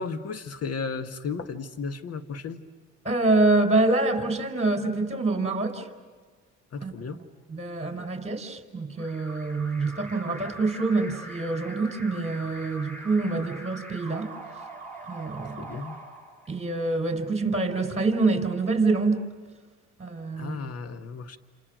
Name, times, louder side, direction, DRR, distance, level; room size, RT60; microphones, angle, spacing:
voice 1, 0.0-2.6 6.7-7.2 15.6-16.0 20.4-21.4, left 4 dB, 50° left, 10 dB, 1.9 m, -34 dB
voice 2, 3.0-5.9 6.8-6.9 7.5-14.3 15.1-15.7 16.5-19.2 20.0-20.6, right 3 dB, 20° right, 5 dB, 4.9 m, -26 dB
Alarm, 9.0-16.9, right 2 dB, 5° left, 7.5 m, -42 dB
29.0 x 28.0 x 6.4 m, 1.4 s
supercardioid pair, 80°, 31 cm